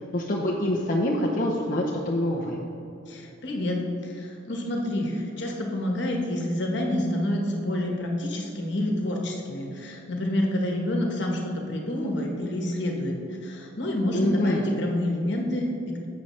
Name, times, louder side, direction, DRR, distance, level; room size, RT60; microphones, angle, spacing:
voice 1, 0.1-2.6 14.1-14.6, left 1 dB, 45° left, -4 dB, 0.8 m, -26 dB
voice 2, 3.1-3.8 4.0-13.1 13.4-16.1, left 1 dB, 60° left, 1 dB, 1.3 m, -28 dB
11.0 x 7.7 x 3.2 m, 2.7 s
head